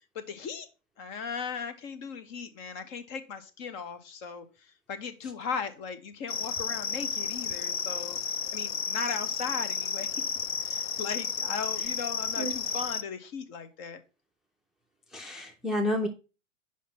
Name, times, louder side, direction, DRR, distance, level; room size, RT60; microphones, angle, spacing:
voice 1, 0.1-0.7 1.0-8.2 8.5-10.2 10.6-14.0, left 6 dB, 50° left, 10 dB, 1.3 m, -37 dB
Brazilian cricket, 6.3-13.0, left 7 dB, 70° left, 0.8 m, -32 dB
voice 2, 15.1-16.1, left 1 dB, ahead, 5 dB, 0.4 m, -30 dB
5.8 x 5.1 x 5.5 m, 0.32 s
hypercardioid pair, 125°, 38 cm